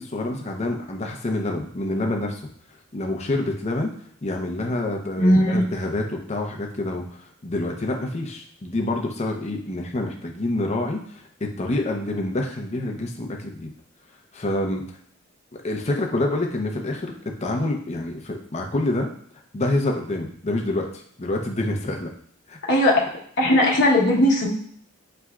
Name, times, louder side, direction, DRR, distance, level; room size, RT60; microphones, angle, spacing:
voice 1, 0.0-2.4 2.9-3.9 4.2-7.0 7.4-13.7 14.3-14.8 15.6-19.1 19.5-22.1 22.5-22.6, left 2 dB, 30° left, 2 dB, 0.6 m, -27 dB
voice 2, 5.2-5.6 22.7-23.1 23.4-24.5, left 1 dB, 55° left, -4 dB, 1.1 m, -18 dB
6.0 x 3.3 x 2.3 m, 0.64 s
head